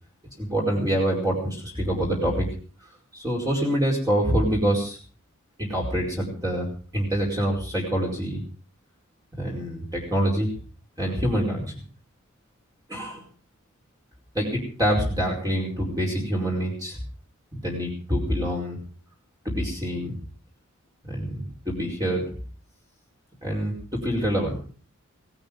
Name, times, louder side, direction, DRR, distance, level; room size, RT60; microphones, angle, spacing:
voice 1, 0.4-2.5 2.8-5.0 5.6-8.4 9.4-10.6 11.0-11.7 12.9-13.3 14.3-17.0 17.5-18.8 19.4-20.1 21.0-22.4 23.4-24.6, equal, 15° right, -2 dB, 4.9 m, -26 dB
18.5 x 13.5 x 5.3 m, 0.40 s
head